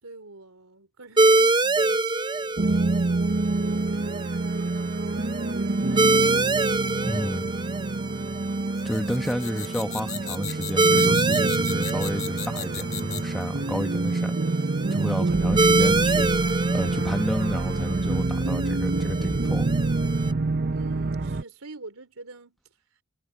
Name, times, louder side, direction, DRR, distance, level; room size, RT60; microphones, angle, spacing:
voice 1, 0.0-6.5 20.7-22.6, right 2 dB, 80° right, 3.4 m, -47 dB
sound 1, 1.2-20.3, right 2 dB, 20° right, 0.7 m, -26 dB
sound 2, 2.6-21.4, right 3 dB, 50° right, 0.8 m, -27 dB
voice 2, 7.0-7.5 8.8-14.4 14.9-19.7, equal, ahead, 1.3 m, -31 dB
sound 3, 8.8-13.4, left 8 dB, 35° left, 1.8 m, -36 dB
head